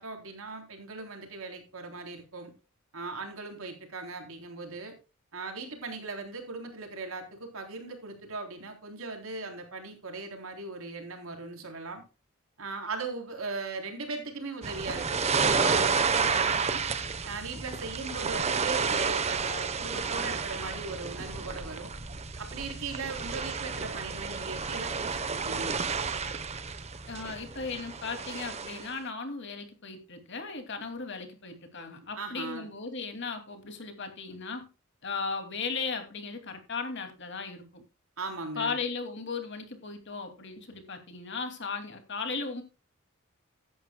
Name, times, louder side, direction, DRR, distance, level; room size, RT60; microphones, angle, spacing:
voice 1, 0.0-2.5 2.9-5.0 5.3-12.0 12.6-16.8 17.2-21.9 22.4-25.8 32.2-32.7 38.2-38.8, right 3 dB, 75° right, 4 dB, 3.6 m, -39 dB
sound 1, 14.6-28.9, right 5 dB, 30° right, 0.9 m, -31 dB
voice 2, 27.1-34.7 35.0-37.8 38.5-42.6, left 4 dB, 55° left, 6 dB, 2.6 m, -36 dB
15.5 x 11.0 x 2.3 m, 0.31 s
head